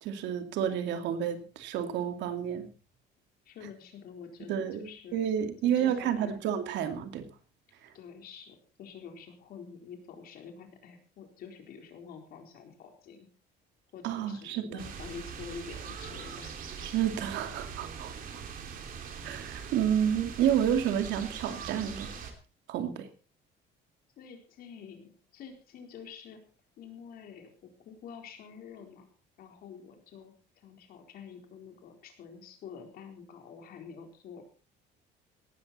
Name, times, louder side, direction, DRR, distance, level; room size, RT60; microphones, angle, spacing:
voice 1, 0.0-2.7 4.5-7.3 7.8-7.9 14.0-14.9 16.8-18.4 19.2-22.1 22.7-23.1, right 9 dB, 70° right, 8 dB, 2.5 m, -30 dB
voice 2, 3.5-5.2 5.6-6.4 7.9-13.3 13.9-16.6 24.2-26.4 26.8-29.1 29.4-34.4, left 6 dB, 50° left, 5 dB, 4.2 m, -47 dB
sound 1, 14.8-22.3, right 6 dB, 45° right, 3.0 m, -42 dB
18.0 x 13.5 x 4.3 m, 0.36 s
cardioid pair, 170°, 19 cm